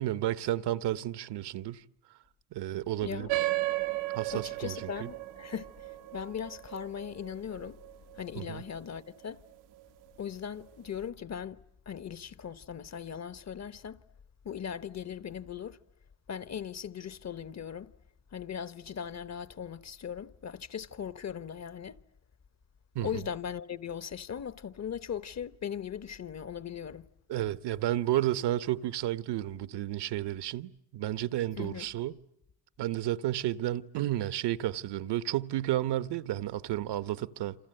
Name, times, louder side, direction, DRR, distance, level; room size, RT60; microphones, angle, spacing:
voice 1, 0.0-1.8 2.5-3.3 4.1-5.1 8.4-8.6 22.9-23.1 27.3-32.1 32.8-37.6, right 13 dB, 60° right, 1.1 m, -32 dB
voice 2, 3.0-3.3 4.3-7.8 8.2-9.4 10.2-14.0 14.4-15.8 16.3-17.9 18.3-22.0 23.0-27.1 31.6-31.9, left 8 dB, 35° left, 1.1 m, -39 dB
sound 1, 3.3-8.2, right 18 dB, 85° right, 1.2 m, -34 dB
28.0 x 27.0 x 7.8 m
supercardioid pair, 75°, 46 cm